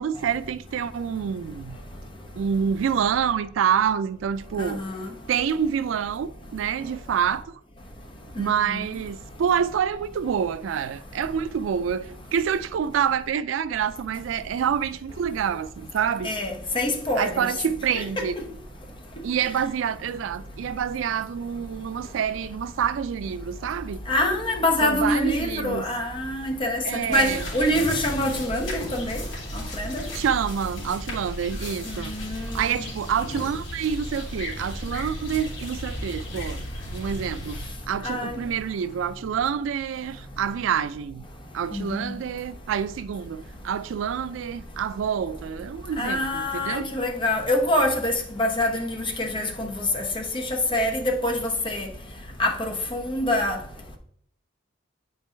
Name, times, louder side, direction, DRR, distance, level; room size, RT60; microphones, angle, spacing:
voice 1, 0.0-1.8 2.3-4.8 5.3-7.5 8.4-16.3 17.2-18.3 19.2-24.0 24.8-25.8 26.8-27.4 30.1-36.6 36.9-37.6 37.9-41.2 41.5-46.9, right 8 dB, 85° right, 0.3 m, -27 dB
voice 2, 4.6-5.0 16.2-17.4 17.9-18.2 24.1-26.8 27.1-29.2 29.5-30.0 32.1-32.7 38.0-38.4 41.7-42.0 46.0-48.1 48.4-49.7 49.9-51.4 51.6-51.9 52.4-53.6, left 1 dB, 25° left, 0.8 m, -25 dB
sound 1, 27.1-37.7, left 1 dB, 75° left, 2.5 m, -35 dB
8.2 x 4.6 x 3.3 m
head